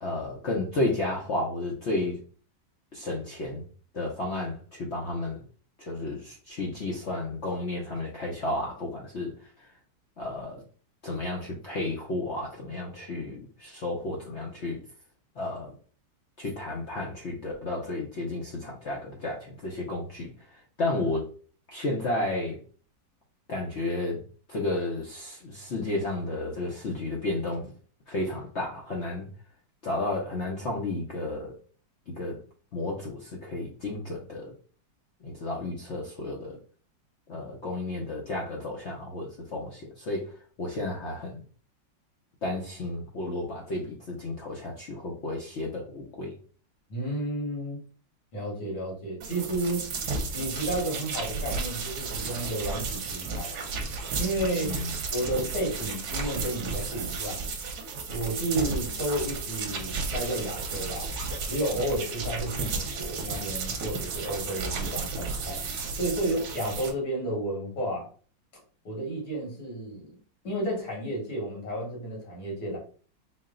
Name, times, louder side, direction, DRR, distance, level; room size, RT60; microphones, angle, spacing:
voice 1, 0.0-2.2 2.9-3.7 3.9-5.4 5.8-9.3 10.2-10.6 11.0-14.8 15.4-15.7 16.4-20.3 20.8-21.3 21.7-22.6 23.5-24.2 24.5-27.7 28.1-29.3 29.8-31.5 32.2-32.4 32.7-34.5 35.2-36.6 37.3-40.3 40.6-41.4 42.4-46.3 54.6-54.9, left 2 dB, 60° left, -2 dB, 0.7 m, -32 dB
voice 2, 46.9-47.8 48.3-49.8 50.3-53.8 54.2-54.7 55.1-57.4 58.1-61.1 61.5-65.6 66.0-68.1 68.8-70.1 70.4-72.8, right 1 dB, 85° left, -2 dB, 2.4 m, -32 dB
sound 1, 49.2-66.9, right 4 dB, 65° right, 1.2 m, -33 dB
4.3 x 2.1 x 3.7 m, 0.41 s
omnidirectional pair, 2.0 m